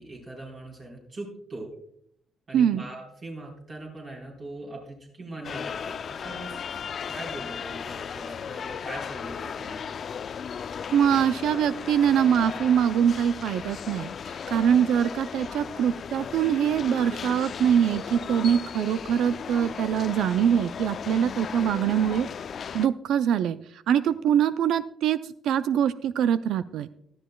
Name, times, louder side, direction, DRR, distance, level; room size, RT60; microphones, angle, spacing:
voice 1, 0.0-1.7 2.5-6.6 7.1-9.8, right 2 dB, 50° right, -2 dB, 4.0 m, -41 dB
voice 2, 2.5-2.8 10.9-22.3 22.7-25.2 25.4-26.9, right 9 dB, 80° right, 14 dB, 0.4 m, -23 dB
sound 1, 5.4-22.9, left 7 dB, 55° left, 0.4 m, -36 dB
17.5 x 12.0 x 2.3 m, 0.69 s
cardioid pair, 90°, 0 cm